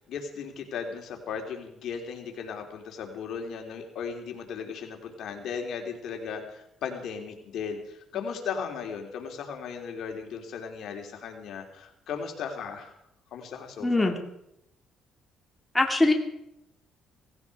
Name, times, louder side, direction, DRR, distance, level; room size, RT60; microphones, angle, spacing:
voice 1, 0.1-12.9 13.3-14.2, left 6 dB, 65° left, 3 dB, 3.2 m, -36 dB
voice 2, 13.8-14.1 15.7-16.1, left 2 dB, 10° left, 3 dB, 2.5 m, -21 dB
17.5 x 16.5 x 4.8 m, 0.80 s
cardioid pair, 95°, 0 cm